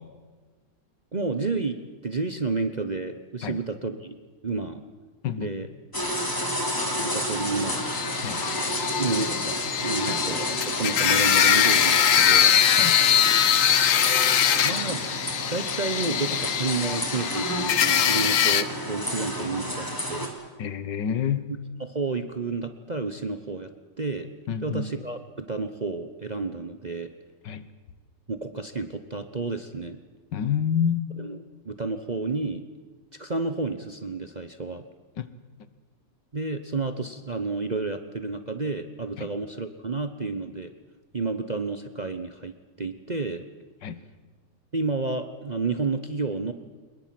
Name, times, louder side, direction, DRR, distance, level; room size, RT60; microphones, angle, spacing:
voice 1, 1.1-4.1 4.4-4.8 5.4-5.7 6.8-7.8 9.0-12.5 14.6-15.0 15.5-20.3 21.8-23.7 24.0-24.3 24.6-27.1 28.3-30.0 31.2-32.6 33.2-34.9 36.3-40.7 41.1-43.4 44.7-46.5, right 3 dB, 30° right, 8 dB, 0.8 m, -30 dB
sound 1, 5.9-20.3, equal, 10° left, 3.0 m, -31 dB
sound 2, 7.7-18.6, left 9 dB, 55° left, 1.1 m, -22 dB
voice 2, 20.6-21.5 24.5-24.9 27.4-27.7 30.3-31.2 35.2-35.3 39.2-39.3 43.8-43.9, left 8 dB, 80° left, 13 dB, 1.8 m, -28 dB
22.5 x 21.0 x 7.7 m, 1.4 s
omnidirectional pair, 1.9 m